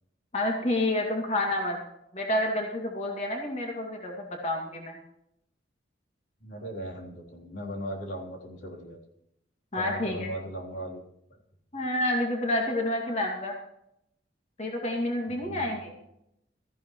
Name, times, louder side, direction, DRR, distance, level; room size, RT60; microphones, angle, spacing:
voice 1, 0.3-1.8 2.1-5.0 9.7-10.3 11.7-13.5 14.6-15.9, left 1 dB, 40° left, 0 dB, 2.3 m, -29 dB
voice 2, 6.4-9.0 9.7-11.0 15.4-15.7, equal, 85° left, -2 dB, 3.5 m, -38 dB
17.5 x 14.5 x 3.1 m, 0.79 s
head